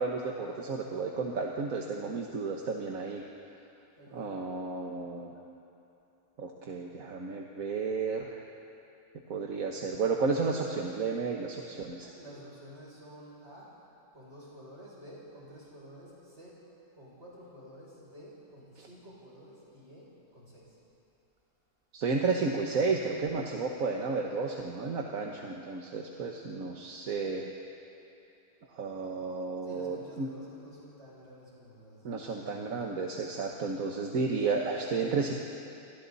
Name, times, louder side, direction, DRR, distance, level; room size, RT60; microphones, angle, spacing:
voice 1, 0.0-3.2 4.1-5.3 6.4-8.4 9.3-12.1 21.9-27.5 28.7-30.3 32.0-35.3, right 4 dB, 45° right, 0 dB, 1.5 m, -32 dB
voice 2, 4.0-4.3 12.0-13.7 14.1-16.5 16.9-20.1 20.3-20.8 29.6-32.8, equal, 30° right, -7 dB, 7.4 m, -51 dB
29.0 x 24.0 x 4.2 m, 2.8 s
omnidirectional pair, 2.2 m